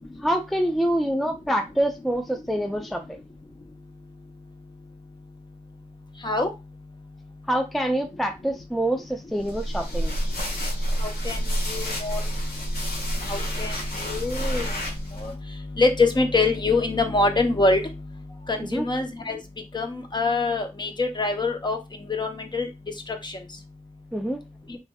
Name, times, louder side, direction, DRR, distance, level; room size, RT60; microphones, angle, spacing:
voice 1, 0.2-3.2 7.5-10.1 18.6-18.8 24.1-24.4, right 1 dB, ahead, 4 dB, 0.4 m, -26 dB
sound 1, 9.4-15.3, equal, 85° left, 1.1 m, -29 dB
voice 2, 11.0-11.4 11.7-12.2 13.3-13.7 14.1-14.7 15.2-15.3 15.8-17.8 18.5-19.4 19.7-21.8 22.2-22.7 23.2-23.3, left 3 dB, 30° left, 4 dB, 0.8 m, -24 dB
3.2 x 3.1 x 2.3 m, 0.25 s
cardioid pair, 45°, 15 cm